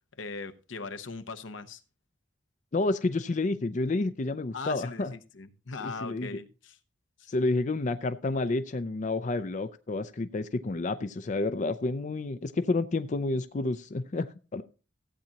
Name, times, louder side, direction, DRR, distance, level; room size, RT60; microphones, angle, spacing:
voice 1, 0.2-1.8 4.5-6.8 7.2-7.3, left 4 dB, 80° left, 9 dB, 0.9 m, -39 dB
voice 2, 2.7-5.1 5.8-6.3 7.3-14.6, left 2 dB, 40° left, 11 dB, 0.5 m, -30 dB
15.0 x 8.6 x 2.9 m, 0.34 s
head